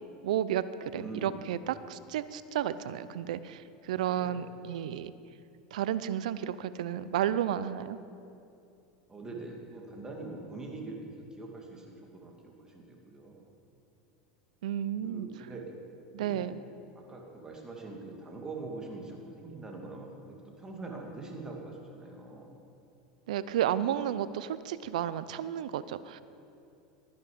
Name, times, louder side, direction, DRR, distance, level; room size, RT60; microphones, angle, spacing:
voice 1, 0.2-5.1 5.7-8.0 14.6-15.3 16.1-16.6 23.3-26.2, right 10 dB, 80° right, 15 dB, 0.5 m, -32 dB
voice 2, 0.9-1.4 4.0-4.4 9.1-13.5 15.0-15.7 16.2-16.6 17.1-22.5, right 3 dB, 15° right, 0 dB, 2.5 m, -43 dB
13.5 x 10.5 x 5.3 m, 2.6 s
hypercardioid pair, 105°, 4 cm